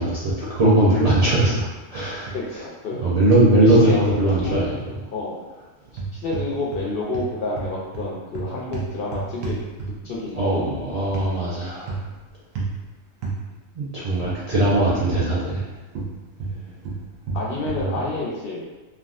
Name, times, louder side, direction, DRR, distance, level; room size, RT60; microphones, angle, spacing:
voice 1, 0.0-2.3 3.0-4.9 10.4-12.0 13.7-15.7 17.8-18.0, right 1 dB, 50° right, -9 dB, 0.4 m, -20 dB
sound 1, 1.2-1.6 2.0-2.4 3.7-4.7 5.9-6.9 7.1-10.2 11.1-11.3 11.9-12.2 12.6-12.8 13.2-13.4 14.2-15.7 15.9-17.9, right 4 dB, 85° right, 1.0 m, -31 dB
voice 2, 2.3-3.0 3.6-4.8 5.1-5.4 6.1-9.6 10.0-10.7 11.9-12.1 16.5-16.7 17.3-18.6, left 2 dB, 60° left, -4 dB, 0.6 m, -29 dB
3.4 x 2.3 x 2.4 m, 1.2 s
omnidirectional pair, 1.3 m